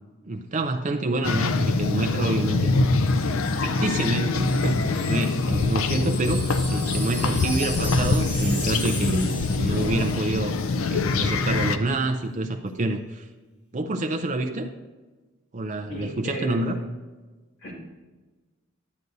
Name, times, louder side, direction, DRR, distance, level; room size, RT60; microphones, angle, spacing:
voice 1, 0.3-2.7 3.6-13.3 13.7-14.7 15.5-16.8, right 2 dB, 35° right, 4 dB, 0.4 m, -27 dB
sound 1, 1.2-11.8, left 3 dB, 75° left, 0.5 m, -24 dB
Wind chime, 3.1-10.3 10.5-10.7, left 1 dB, 35° left, 2.4 m, -37 dB
voice 2, 15.9-16.8 17.6-17.7, equal, 55° left, -3 dB, 2.1 m, -35 dB
10.5 x 8.0 x 2.7 m, 1.3 s
head